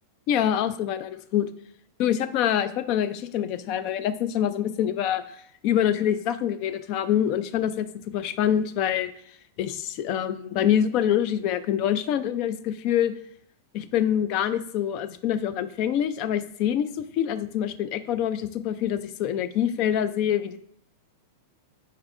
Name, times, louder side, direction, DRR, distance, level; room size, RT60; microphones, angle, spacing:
voice 1, 0.3-1.5 2.0-7.9 8.1-9.1 9.6-13.1 13.7-20.6, left 10 dB, 50° left, 13 dB, 0.4 m, -25 dB
4.6 x 4.3 x 2.5 m, 0.68 s
hypercardioid pair, 115°, 0 cm